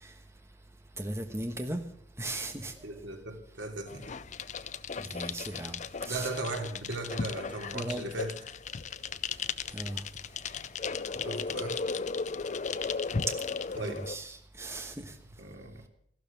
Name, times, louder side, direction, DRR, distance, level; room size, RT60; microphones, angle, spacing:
voice 1, 1.0-1.8 2.2-2.7 5.0-6.3 7.7-8.0 9.7-10.0 12.9-13.0 13.8-15.1, right 1 dB, 15° right, 1.2 m, -37 dB
voice 2, 2.8-4.2 6.1-8.3 11.2-11.8 13.8-14.1 15.4-15.8, right 2 dB, 90° right, 2.9 m, -37 dB
sound 1, 3.9-14.2, left 5 dB, 40° left, 0.5 m, -36 dB
14.5 x 12.5 x 7.4 m
head